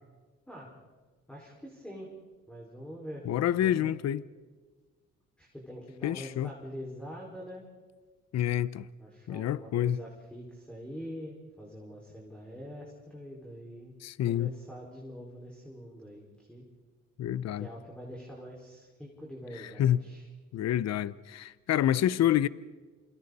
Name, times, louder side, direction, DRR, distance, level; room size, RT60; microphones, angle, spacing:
voice 1, 1.3-2.1 2.5-3.3 3.5-3.9 5.4-7.7 9.0-13.9 14.3-16.6 17.6-20.3, equal, 5° left, 5.1 m, -44 dB
voice 2, 3.2-4.2 6.0-6.5 8.3-8.9 9.3-10.0 14.0-14.5 17.2-17.7 19.5-20.0 20.5-22.5, left 11 dB, 60° left, 0.7 m, -28 dB
28.5 x 27.5 x 4.2 m
cardioid pair, 90°, 30 cm